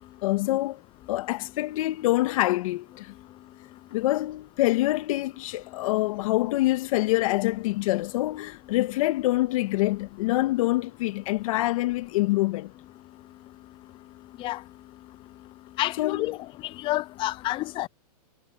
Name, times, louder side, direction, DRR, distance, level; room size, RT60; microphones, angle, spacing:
voice 1, 0.2-0.8 1.1-3.1 3.9-12.7 15.9-16.5, left 18 dB, 60° left, 1.8 m, -26 dB
voice 2, 15.8-16.4 16.8-17.9, left 17 dB, 25° left, 0.5 m, -28 dB
hypercardioid pair, 135°, 20 cm